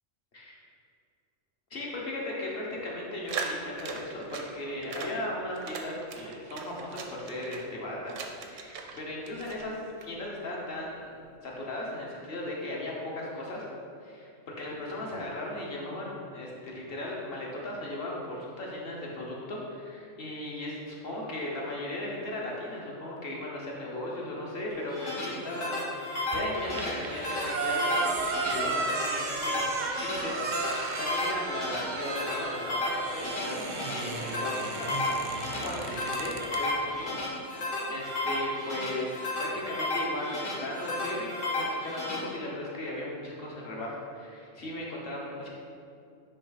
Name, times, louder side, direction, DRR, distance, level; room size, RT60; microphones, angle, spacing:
voice 1, 1.7-9.8 10.0-13.6 14.0-29.7 30.0-33.6 33.9-37.2 37.5-45.5, left 1 dB, 50° left, -3 dB, 1.3 m, -37 dB
sound 1, 3.3-4.5 4.8-5.1 5.5-7.7 8.1-9.0 9.3-10.1, right 5 dB, 85° right, 1.0 m, -39 dB
sound 2, 24.7-42.2, left 2 dB, 80° left, 1.8 m, -33 dB
sound 3, 26.3-36.6, right 4 dB, 50° right, 0.6 m, -34 dB
9.5 x 3.4 x 4.1 m, 2.4 s
omnidirectional pair, 1.3 m